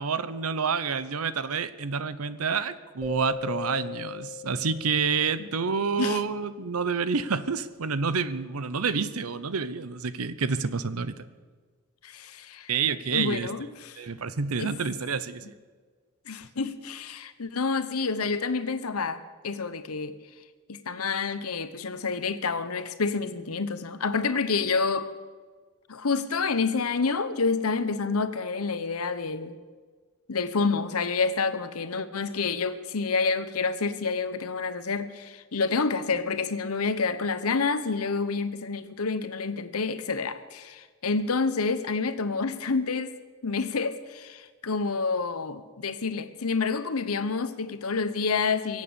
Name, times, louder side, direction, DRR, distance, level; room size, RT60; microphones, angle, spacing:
voice 1, 0.0-11.3 12.7-13.5 14.0-15.5, right 5 dB, 80° right, 14 dB, 0.8 m, -28 dB
sound 1, 3.0-5.7, left 3 dB, ahead, 5.4 m, -37 dB
voice 2, 12.0-12.7 13.1-14.0 14.6-14.7 15.4-15.5 16.3-20.2 20.7-25.1 25.9-29.6 30.3-43.1 43.4-48.8, left 4 dB, 85° left, 12 dB, 0.9 m, -28 dB
23.0 x 8.4 x 6.9 m, 1.5 s
head